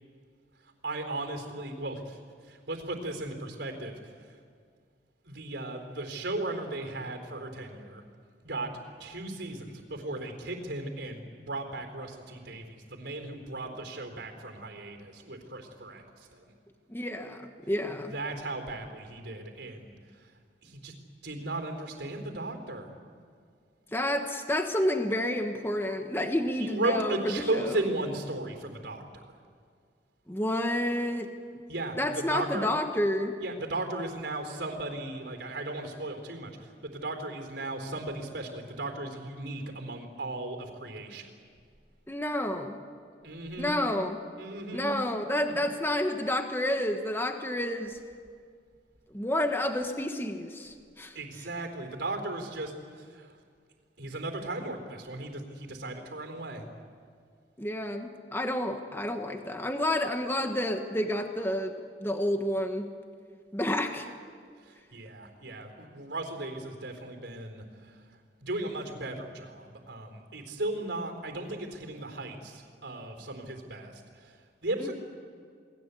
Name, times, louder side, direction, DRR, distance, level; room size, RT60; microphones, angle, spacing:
voice 1, 0.6-4.4 5.2-8.0 8.4-16.5 18.1-20.3 20.6-20.9 21.2-22.9 26.6-29.2 31.7-32.7 33.4-41.3 43.2-43.8 44.4-45.0 51.1-53.4 54.0-56.7 64.6-74.9, right 2 dB, 70° right, 5 dB, 4.1 m, -36 dB
voice 2, 16.9-18.1 23.9-27.6 30.3-31.3 32.0-33.3 42.1-42.8 43.6-44.2 44.7-48.0 49.1-51.2 57.6-62.9 63.5-64.1 74.8-74.9, left 1 dB, 10° left, 5 dB, 1.3 m, -30 dB
29.0 x 20.0 x 8.4 m, 2.1 s
head